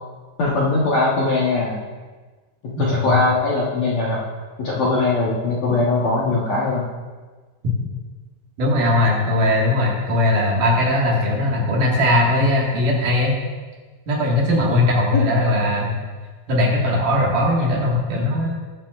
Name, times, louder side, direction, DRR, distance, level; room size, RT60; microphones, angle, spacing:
voice 1, 0.4-1.8 2.6-4.2 4.6-6.9 14.7-14.8 15.1-15.3, left 2 dB, 65° left, -6 dB, 1.8 m, -21 dB
voice 2, 8.6-13.4 14.1-16.0 16.5-18.5, left 1 dB, 60° right, -3 dB, 3.0 m, -19 dB
19.5 x 9.1 x 2.4 m, 1.4 s
omnidirectional pair, 4.7 m